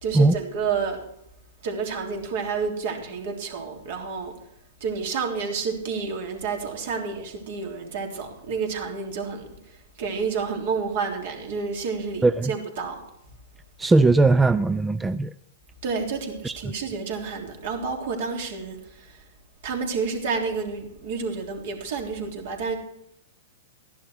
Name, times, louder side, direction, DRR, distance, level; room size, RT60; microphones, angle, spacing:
voice 1, 0.0-1.0 1.6-4.3 4.8-9.5 10.0-13.0 15.8-18.8 19.6-22.8, right 5 dB, 60° right, 2 dB, 3.3 m, -29 dB
voice 2, 12.2-12.5 13.8-15.3 16.4-16.5, right 3 dB, 10° right, 13 dB, 0.4 m, -19 dB
13.5 x 11.0 x 4.6 m, 0.81 s
hypercardioid pair, 120°, 0 cm